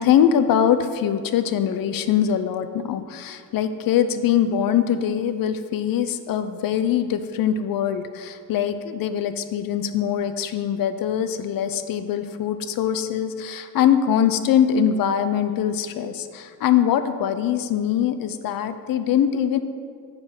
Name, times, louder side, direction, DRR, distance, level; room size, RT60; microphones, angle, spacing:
voice 1, 0.0-19.6, left 9 dB, 80° left, 10 dB, 0.6 m, -22 dB
9.7 x 3.9 x 6.0 m, 2.1 s
cardioid pair, 145°, 34 cm